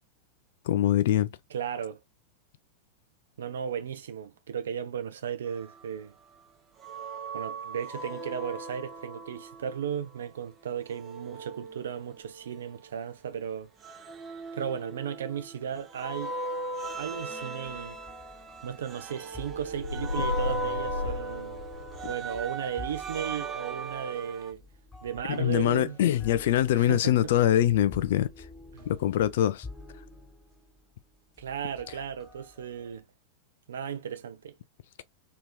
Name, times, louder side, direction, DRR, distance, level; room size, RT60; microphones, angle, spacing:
voice 1, 0.7-1.3 25.3-28.3 28.9-29.6, left 12 dB, 55° left, 0.3 m, -23 dB
voice 2, 1.5-2.0 3.4-6.1 7.3-13.7 14.5-16.3 17.0-18.0 18.6-21.6 22.1-24.6 25.0-26.0 26.7-27.2 28.7-28.9 31.4-33.0 33.7-34.5, right 8 dB, 65° right, 0.5 m, -35 dB
sound 1, 6.8-9.7 10.9-12.7 13.8-15.5 15.9-24.5, right 3 dB, 25° right, 0.6 m, -38 dB
sound 2, 16.8-33.0, left 2 dB, 10° left, 1.4 m, -49 dB
sound 3, 19.8-22.2, left 4 dB, 70° left, 0.8 m, -34 dB
2.9 x 2.7 x 2.3 m
figure-of-eight pair, 90°, 0 cm